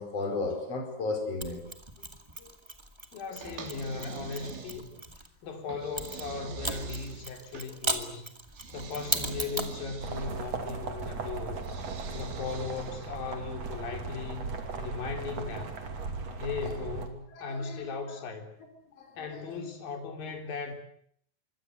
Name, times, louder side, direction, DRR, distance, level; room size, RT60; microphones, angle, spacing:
voice 1, 0.0-1.7 2.4-2.5 17.3-18.2 19.0-19.6, left 3 dB, 35° left, 5.7 m, -35 dB
Mechanisms, 1.4-5.3 6.0-9.8, right 1 dB, 10° right, 1.2 m, -37 dB
voice 2, 3.1-4.9 5.4-8.3 8.7-11.6 12.1-14.5 14.8-15.8 16.4-18.5 19.2-20.7, left 5 dB, 55° left, 5.1 m, -37 dB
sound 1, 3.4-5.1 5.7-7.7 8.5-10.4 11.6-13.2, right 6 dB, 80° right, 5.3 m, -44 dB
sound 2, 10.0-17.1, right 4 dB, 40° right, 3.5 m, -37 dB
26.0 x 24.0 x 8.1 m
omnidirectional pair, 5.0 m